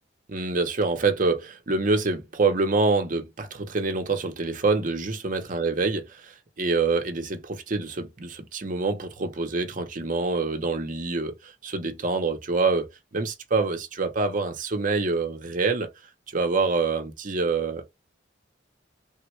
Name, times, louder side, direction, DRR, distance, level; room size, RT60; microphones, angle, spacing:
voice 1, 0.3-15.9 16.3-17.8, right 3 dB, 45° right, 0.7 m, -26 dB
3.5 x 2.2 x 3.0 m
head